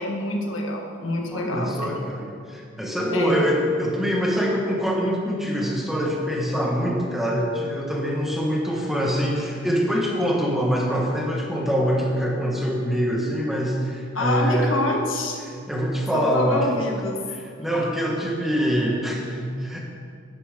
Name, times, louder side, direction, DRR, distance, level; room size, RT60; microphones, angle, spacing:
voice 1, 0.0-2.0 3.1-3.4 14.1-15.4 16.1-17.2 17.7-17.8, left 2 dB, 85° left, 1 dB, 1.6 m, -26 dB
voice 2, 1.3-14.8 15.4-16.7 17.3-19.8, equal, ahead, -3 dB, 1.5 m, -24 dB
11.0 x 10.5 x 3.8 m, 2.2 s
head